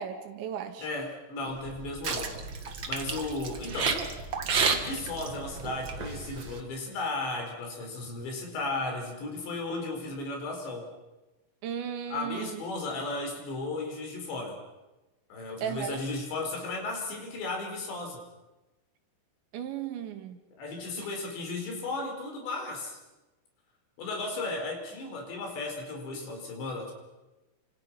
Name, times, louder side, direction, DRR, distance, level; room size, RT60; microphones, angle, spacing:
voice 1, 0.0-0.9 11.6-12.6 15.6-16.0 19.5-20.4, right 8 dB, 80° right, 6 dB, 4.2 m, -35 dB
voice 2, 0.8-2.4 2.9-4.0 4.8-10.9 12.1-14.6 15.3-18.2 20.6-23.0 24.0-26.9, left 2 dB, 75° left, 2 dB, 7.0 m, -35 dB
sound 1, 1.5-6.6, right 5 dB, 60° right, 1.2 m, -32 dB
29.5 x 26.5 x 5.9 m, 1.1 s
omnidirectional pair, 5.2 m